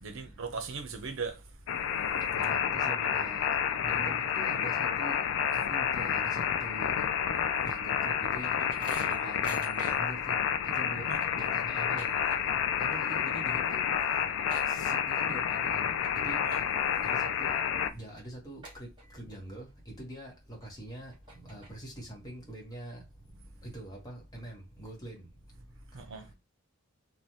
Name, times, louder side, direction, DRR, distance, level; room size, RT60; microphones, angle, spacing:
voice 1, 0.0-1.4 11.1-11.2 16.4-16.6 16.8-17.0 25.9-26.3, right 4 dB, 65° right, 0.6 m, -38 dB
sound 1, 1.7-17.9, left 8 dB, 65° left, 0.4 m, -30 dB
voice 2, 2.4-3.5 3.8-5.2 5.7-7.0 7.6-10.3 10.7-12.1 12.8-13.8 14.1-14.2 14.7-15.8 16.1-16.4 17.0-17.5 17.9-21.1 21.4-23.0 23.6-25.3, right 1 dB, 20° left, 1.0 m, -44 dB
sound 2, 7.8-10.2 10.6-10.7 11.0-12.7 13.0-13.4 13.7-13.8 14.0-15.4 15.8-16.1 16.5-17.0 17.5-17.6 18.2-18.3 18.6-19.4 19.8-19.9 20.6-20.7 21.1-22.0, right 1 dB, 20° right, 1.1 m, -47 dB
3.1 x 2.3 x 2.6 m
head